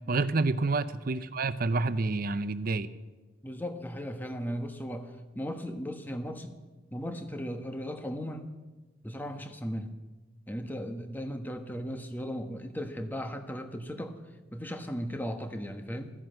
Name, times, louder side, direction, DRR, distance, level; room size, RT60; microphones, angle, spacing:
voice 1, 0.1-2.9, right 3 dB, 50° right, 13 dB, 0.7 m, -28 dB
voice 2, 3.4-6.6 6.9-8.5 9.0-9.9 10.5-14.2 14.5-16.1, equal, 10° left, 6 dB, 1.1 m, -37 dB
14.0 x 10.5 x 7.8 m, 1.2 s
head